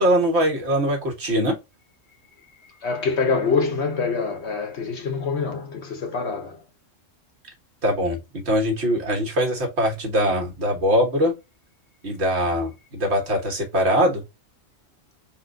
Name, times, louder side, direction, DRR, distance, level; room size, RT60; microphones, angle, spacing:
voice 1, 0.0-1.6 7.8-11.3 12.0-14.2, equal, 55° right, 1.4 m, -22 dB
voice 2, 2.8-6.6, left 4 dB, 60° left, 1.0 m, -25 dB
4.3 x 2.2 x 3.7 m
omnidirectional pair, 1.4 m